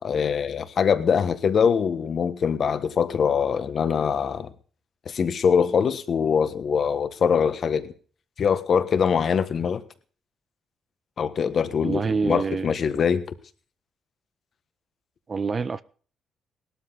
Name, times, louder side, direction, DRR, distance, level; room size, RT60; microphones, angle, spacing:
voice 1, 0.0-4.5 5.0-7.9 8.4-9.8 11.2-13.2, left 6 dB, 55° left, 1.4 m, -23 dB
voice 2, 11.8-12.8 15.3-15.8, right 5 dB, 35° right, 0.6 m, -26 dB
18.0 x 13.0 x 4.0 m
cardioid pair, 90°, 0 cm